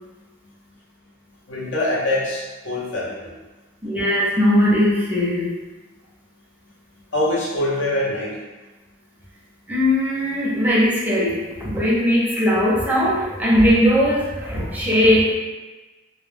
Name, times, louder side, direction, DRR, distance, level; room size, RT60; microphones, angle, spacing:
voice 1, 1.5-3.3 7.1-8.3, left 1 dB, 70° left, -6 dB, 0.7 m, -24 dB
voice 2, 3.8-5.5 9.7-15.3, equal, 10° right, -6 dB, 0.5 m, -19 dB
2.2 x 2.1 x 3.2 m, 1.2 s
head